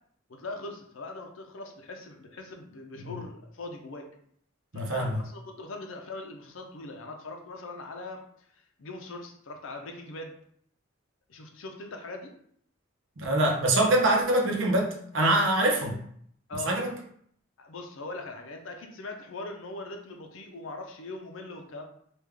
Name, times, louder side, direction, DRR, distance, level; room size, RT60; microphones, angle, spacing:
voice 1, 0.3-4.1 4.7-8.3 8.8-10.3 11.3-12.3 16.5-16.7 17.6-21.9, left 2 dB, 70° left, 3 dB, 0.6 m, -41 dB
voice 2, 4.7-5.2 13.2-16.0 16.7-16.9, right 1 dB, 65° right, 1 dB, 0.7 m, -24 dB
3.4 x 2.4 x 3.4 m, 0.65 s
head